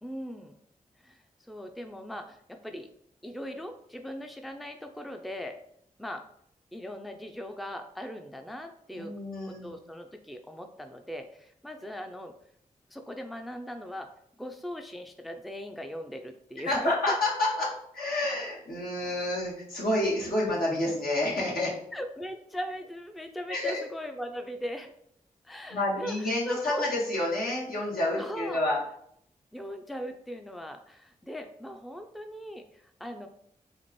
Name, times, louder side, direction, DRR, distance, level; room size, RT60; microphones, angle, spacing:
voice 1, 0.0-0.6 1.0-2.9 3.2-5.6 6.0-6.2 6.7-9.1 9.4-12.4 12.9-14.1 14.4-17.2 21.9-24.9 25.4-26.9 28.2-28.6 29.5-33.3, equal, ahead, 5 dB, 0.4 m, -39 dB
voice 2, 8.9-9.7 16.6-21.7 23.5-23.8 25.7-28.8, left 1 dB, 75° left, -5 dB, 1.4 m, -29 dB
4.3 x 2.5 x 3.0 m, 0.69 s
cardioid pair, 40°, 15 cm